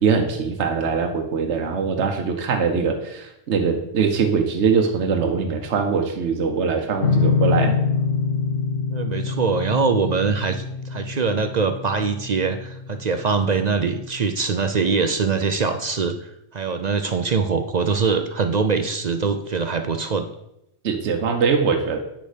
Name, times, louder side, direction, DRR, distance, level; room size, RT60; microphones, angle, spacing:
voice 1, 0.0-7.8 20.8-22.0, right 5 dB, 70° right, 4 dB, 1.2 m, -22 dB
sound 1, 7.0-14.2, left 4 dB, 70° left, 1.0 m, -25 dB
voice 2, 8.9-20.3, right 5 dB, 50° right, 8 dB, 0.5 m, -23 dB
8.8 x 6.4 x 5.0 m, 0.83 s
omnidirectional pair, 1.2 m